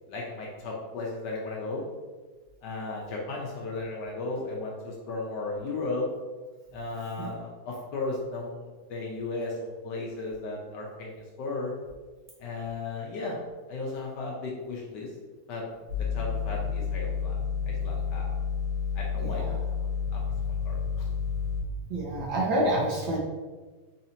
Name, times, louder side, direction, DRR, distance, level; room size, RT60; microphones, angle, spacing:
voice 1, 0.1-1.8 2.6-6.1 6.7-11.7 12.4-13.4 13.7-15.1 15.5-15.6 16.1-17.4 17.7-18.4 18.9-19.4 20.1-20.2 20.7-21.1, left 3 dB, 70° left, -2 dB, 1.1 m, -35 dB
sound 1, 15.9-21.6, left 6 dB, 50° right, 1.4 m, -30 dB
voice 2, 19.2-19.6 21.9-23.2, right 1 dB, 65° right, -3 dB, 1.1 m, -28 dB
4.0 x 2.8 x 2.7 m, 1.3 s
omnidirectional pair, 2.2 m